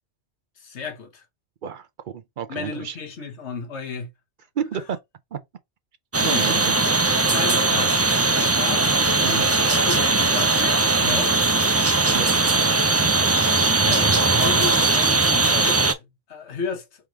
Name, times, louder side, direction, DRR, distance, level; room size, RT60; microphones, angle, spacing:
voice 1, 0.6-1.2 2.5-4.1 6.2-6.7 7.3-8.0 8.4-9.4 9.7-11.5 13.6-14.1 14.4-16.8, left 5 dB, 80° left, 1.4 m, -33 dB
voice 2, 1.6-3.0 4.6-5.0 5.3-5.4 6.2-6.7 9.2-9.5 12.1-12.3 13.1-13.7, right 8 dB, 55° right, 0.7 m, -30 dB
sound 1, 6.1-15.9, right 3 dB, 20° right, 0.4 m, -19 dB
3.6 x 3.0 x 4.8 m
omnidirectional pair, 1.1 m